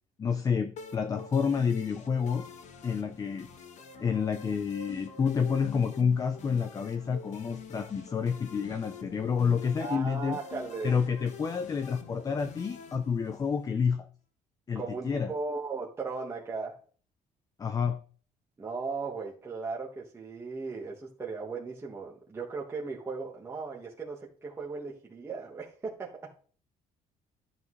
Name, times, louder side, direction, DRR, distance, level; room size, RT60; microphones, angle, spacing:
voice 1, 0.2-2.5 2.8-3.5 4.0-10.4 10.8-14.1 14.7-15.3 17.6-18.0, left 6 dB, 25° left, 9 dB, 0.6 m, -29 dB
sound 1, 0.8-13.8, left 5 dB, 50° left, 1.1 m, -47 dB
voice 2, 9.8-10.9 14.7-16.7 18.6-26.3, right 4 dB, 15° right, -3 dB, 1.5 m, -37 dB
12.0 x 7.6 x 3.2 m, 0.42 s
cardioid pair, 155°, 15 cm